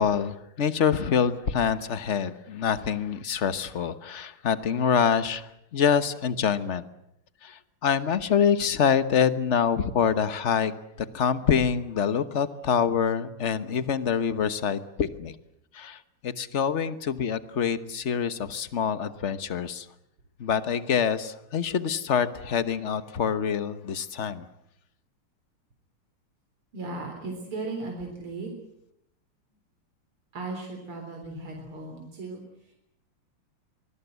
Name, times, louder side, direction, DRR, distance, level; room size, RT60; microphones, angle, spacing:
voice 1, 0.0-6.9 7.4-10.7 11.0-15.3 15.7-19.9 20.4-24.4, left 7 dB, 40° left, 12 dB, 1.2 m, -26 dB
voice 2, 26.7-28.5 30.3-32.7, right 3 dB, 80° right, 2 dB, 4.7 m, -36 dB
24.5 x 21.0 x 8.2 m, 0.81 s
omnidirectional pair, 2.3 m